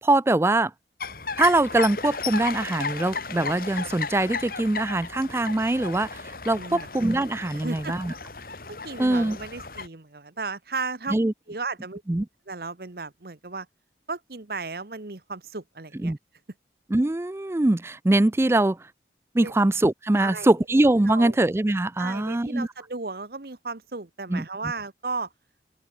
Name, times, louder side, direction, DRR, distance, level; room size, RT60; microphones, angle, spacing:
voice 1, 0.0-0.7 1.4-8.1 9.0-9.4 11.1-11.3 12.1-12.3 16.0-16.2 16.9-18.8 19.3-22.7 24.3-24.4, right 2 dB, 15° right, 0.4 m, -23 dB
sound 1, 1.0-9.9, left 4 dB, 55° left, 2.6 m, -34 dB
voice 2, 6.6-6.9 7.5-8.0 8.7-11.1 11.5-12.0 12.5-13.7 14.1-16.1 19.4-19.5 20.2-20.5 21.1-21.4 22.0-25.3, right 4 dB, 55° right, 1.1 m, -34 dB
open air
head